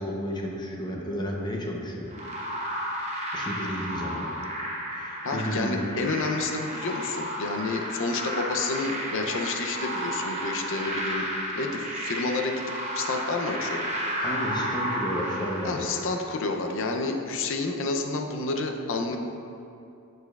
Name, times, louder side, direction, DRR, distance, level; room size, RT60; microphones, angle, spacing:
voice 1, 0.0-2.2 3.3-4.3 4.9-5.9 14.2-15.9, equal, 20° left, -1 dB, 0.7 m, -32 dB
sound 1, 2.1-16.5, equal, 30° right, 0.9 m, -32 dB
voice 2, 5.2-11.3 11.6-13.9 15.6-19.2, left 3 dB, 60° left, 4 dB, 0.5 m, -30 dB
6.7 x 6.6 x 2.3 m, 2.6 s
head